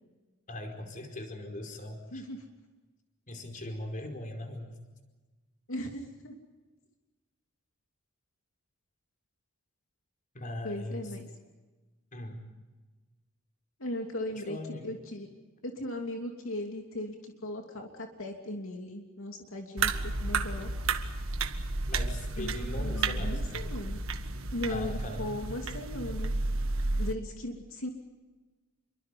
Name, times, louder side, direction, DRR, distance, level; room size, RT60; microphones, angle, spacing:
voice 1, 0.5-2.2 3.3-4.8 10.3-11.2 12.1-12.4 14.3-14.9 21.9-23.7 24.7-25.2, left 1 dB, 40° left, 3 dB, 4.8 m, -40 dB
voice 2, 2.1-2.4 5.7-6.4 10.6-11.3 13.8-15.3 15.6-20.7 22.4-24.0 24.5-26.3 27.0-27.9, left 1 dB, 80° left, 2 dB, 2.9 m, -38 dB
sound 1, 19.8-27.1, right 3 dB, 80° right, 1.6 m, -32 dB
28.5 x 24.0 x 5.4 m, 1.2 s
head